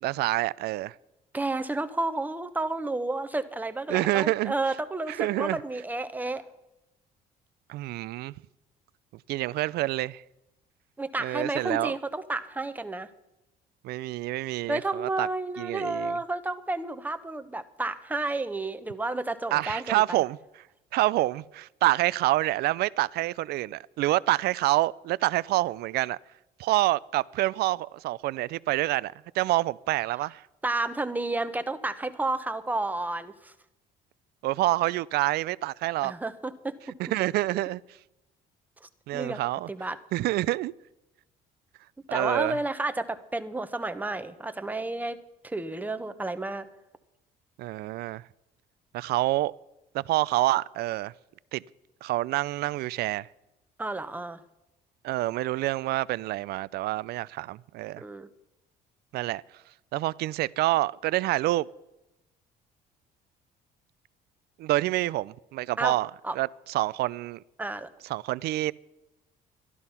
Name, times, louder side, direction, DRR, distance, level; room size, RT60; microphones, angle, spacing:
voice 1, 0.0-0.9 3.9-4.5 5.1-5.6 7.7-8.3 9.3-10.2 11.2-11.9 13.8-15.3 15.6-16.2 19.5-20.4 20.9-26.2 26.6-30.4 34.4-36.1 37.0-37.8 39.1-39.7 40.1-40.7 42.1-42.6 47.6-48.2 48.9-49.5 49.9-51.1 51.5-51.6 52.0-53.3 55.0-58.0 59.1-59.4 59.9-61.7 64.6-66.1 66.4-67.4 68.1-68.7, right 17 dB, 70° right, 0.4 m, -27 dB
voice 2, 1.3-6.4 11.0-13.1 14.7-20.2 30.6-33.5 36.0-36.8 38.8-39.4 39.7-40.0 42.1-46.7 53.8-54.4 58.0-58.3 65.8-66.0 66.2-66.4 67.6-67.9, right 2 dB, 10° right, 0.8 m, -31 dB
12.5 x 11.5 x 5.6 m
cardioid pair, 110°, 17 cm